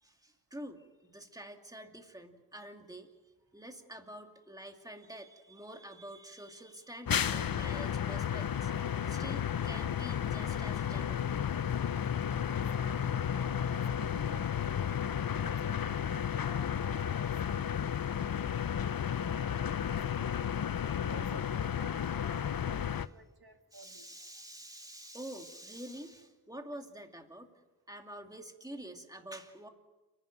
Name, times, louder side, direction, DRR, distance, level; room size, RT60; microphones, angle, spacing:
voice 1, 0.0-11.2 22.9-23.1 23.7-27.5 27.9-29.7, right 1 dB, 10° right, 3 dB, 2.5 m, -48 dB
sound 1, 7.1-23.1, left 8 dB, 60° left, 0.7 m, -33 dB
voice 2, 12.4-17.9 18.2-20.4 20.8-24.2, right 3 dB, 70° right, 5 dB, 2.2 m, -54 dB
30.0 x 11.0 x 9.0 m, 1.2 s
wide cardioid pair, 85°, 38 cm